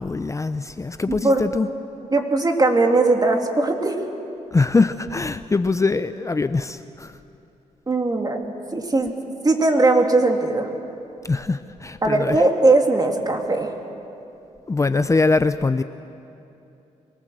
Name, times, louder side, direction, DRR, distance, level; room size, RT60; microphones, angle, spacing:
voice 1, 0.0-1.7 4.5-7.2 11.2-12.4 14.7-15.8, left 3 dB, 25° left, 11 dB, 0.6 m, -22 dB
voice 2, 1.1-1.4 2.1-4.0 7.9-9.2 9.4-10.7 12.0-13.7, right 2 dB, 30° right, 3 dB, 2.8 m, -19 dB
24.5 x 19.0 x 7.7 m, 2.8 s
cardioid pair, 70°, 13 cm